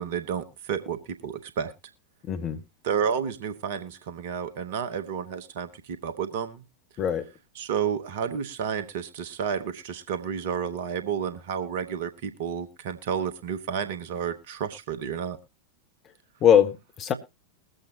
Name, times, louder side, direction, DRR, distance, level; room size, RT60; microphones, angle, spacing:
voice 1, 0.0-1.7 2.8-6.6 7.6-15.4, right 7 dB, 50° right, 1.2 m, -31 dB
voice 2, 2.3-2.6 7.0-7.3 16.4-17.1, left 9 dB, 30° left, 1.3 m, -21 dB
21.5 x 7.8 x 2.8 m
figure-of-eight pair, 90°, 0 cm